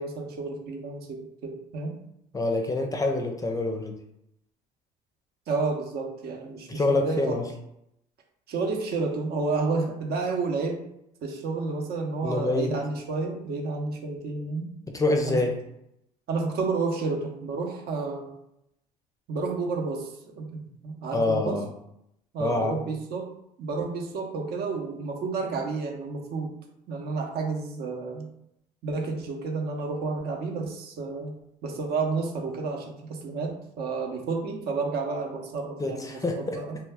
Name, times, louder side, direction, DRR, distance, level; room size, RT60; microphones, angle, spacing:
voice 1, 0.0-1.9 5.5-7.3 8.5-10.8 11.2-14.7 15.3-15.5 16.3-18.3 19.3-20.1 20.3-21.6 22.3-23.3 23.6-26.5 26.9-28.3 28.8-31.3 31.6-36.8, right 4 dB, 60° right, 2 dB, 0.7 m, -30 dB
voice 2, 2.3-4.0 6.7-7.4 12.2-12.7 14.9-15.5 21.1-21.7 22.4-22.8 35.8-36.6, left 2 dB, 20° left, 3 dB, 0.5 m, -26 dB
2.2 x 2.2 x 3.4 m, 0.79 s
supercardioid pair, 75°, 19 cm